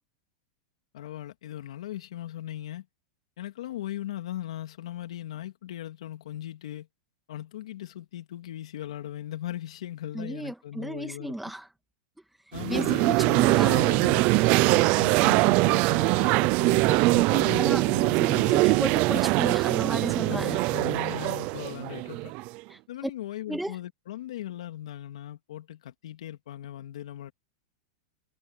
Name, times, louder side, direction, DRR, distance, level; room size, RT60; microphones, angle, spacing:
voice 1, 0.9-2.9 3.4-6.9 7.3-11.4 12.5-18.6 20.2-22.3 22.9-27.3, left 12 dB, 80° left, 3.2 m, -38 dB
voice 2, 10.1-11.7 12.7-13.9 17.6-17.9 18.2-20.6 22.7-22.8 23.5-23.8, right 1 dB, ahead, 2.2 m, -33 dB
sound 1, 12.5-22.6, right 23 dB, 40° right, 0.6 m, -23 dB
supercardioid pair, 155°, 3 cm